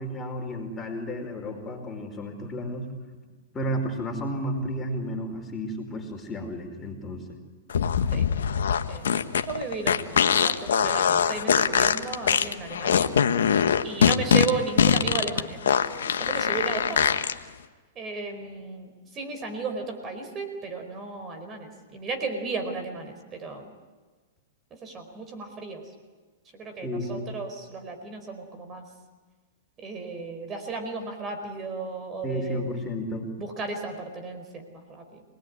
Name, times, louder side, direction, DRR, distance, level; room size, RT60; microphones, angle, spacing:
voice 1, 0.0-2.9 3.5-7.4 26.8-27.3 32.2-33.3, equal, 20° left, 3 dB, 5.0 m, -32 dB
sound 1, 7.7-17.3, left 7 dB, 80° left, 1.3 m, -22 dB
voice 2, 8.9-13.1 13.8-17.0 17.9-23.7 24.7-25.8 26.5-28.8 29.8-32.6 33.4-35.2, right 4 dB, 25° right, 6 dB, 4.9 m, -35 dB
27.0 x 20.0 x 9.8 m, 1.3 s
hypercardioid pair, 120°, 0 cm